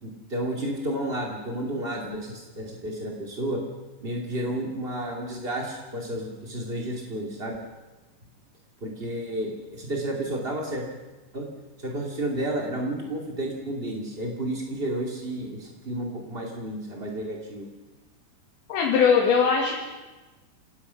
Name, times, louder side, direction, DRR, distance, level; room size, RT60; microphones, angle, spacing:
voice 1, 0.0-3.6 4.0-7.6 8.8-10.8 11.3-11.5 11.8-17.7, right 1 dB, 35° right, 0 dB, 0.9 m, -31 dB
voice 2, 18.7-19.7, left 6 dB, 65° left, -1 dB, 4.5 m, -20 dB
29.0 x 18.0 x 5.8 m, 1.2 s
omnidirectional pair, 5.9 m